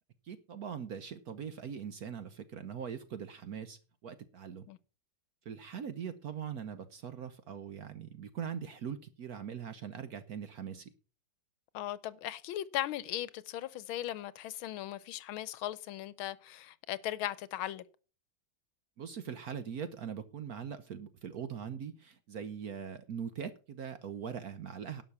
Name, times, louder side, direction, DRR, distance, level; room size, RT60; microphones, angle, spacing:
voice 1, 0.2-4.7 5.4-10.9 19.0-25.0, right 7 dB, 60° right, 1.0 m, -41 dB
voice 2, 11.7-17.8, left 13 dB, 80° left, 1.5 m, -38 dB
11.5 x 6.1 x 7.0 m
omnidirectional pair, 2.3 m